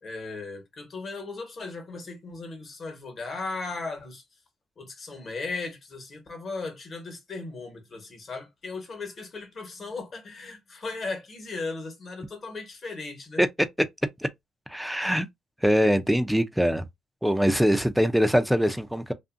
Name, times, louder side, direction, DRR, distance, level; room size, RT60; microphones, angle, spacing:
voice 1, 0.0-4.2 4.8-13.4, left 3 dB, 45° left, 1.1 m, -37 dB
voice 2, 14.7-15.3 15.6-16.9 17.2-19.1, equal, ahead, 0.5 m, -22 dB
2.6 x 2.5 x 2.5 m
cardioid pair, 90°, 0 cm